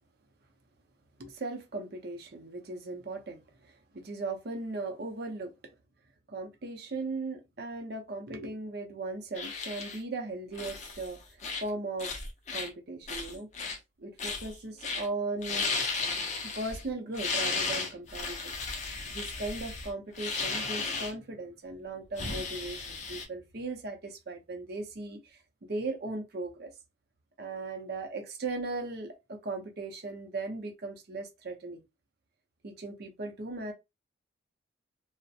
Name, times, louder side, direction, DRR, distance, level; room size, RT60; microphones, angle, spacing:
voice 1, 1.2-5.5 6.3-11.2 11.6-12.1 12.5-13.5 14.0-15.7 16.4-18.6 19.1-26.7 27.4-31.8 32.6-33.7, right 3 dB, 50° right, 0.6 m, -38 dB
sound 1, 9.3-10.0 10.5-11.1 11.4-11.7 12.0-12.7 13.1-13.8 14.2-14.5 14.8-15.1 15.4-16.8 17.1-21.1 22.2-23.2, left 4 dB, 35° left, 0.5 m, -34 dB
2.4 x 2.0 x 2.6 m
head